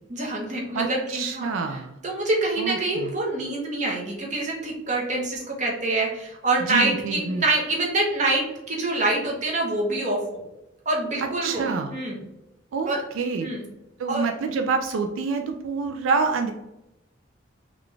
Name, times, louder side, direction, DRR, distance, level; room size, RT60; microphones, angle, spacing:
voice 1, 0.1-1.5 2.0-10.4 10.9-12.2 12.9-13.0 13.4-13.6 14.1-14.2, right 2 dB, 35° right, -2 dB, 0.9 m, -26 dB
voice 2, 0.7-2.0 2.6-3.1 6.7-7.4 11.4-11.9 12.7-13.5 14.0-16.5, right 4 dB, 85° right, 4 dB, 0.3 m, -27 dB
3.8 x 2.3 x 3.2 m, 0.92 s
head